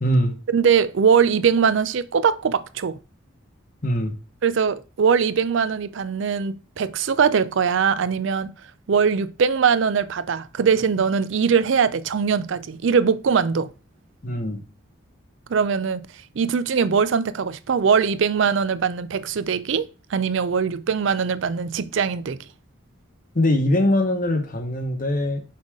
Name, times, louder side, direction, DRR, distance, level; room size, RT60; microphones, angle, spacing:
voice 1, 0.0-0.4 3.8-4.1 14.2-14.6 23.3-25.4, left 1 dB, 40° left, 0.9 m, -22 dB
voice 2, 0.5-3.0 4.4-8.5 8.9-13.7 15.5-16.1 16.4-22.4, right 6 dB, 60° right, 0.4 m, -21 dB
5.6 x 4.0 x 4.7 m
head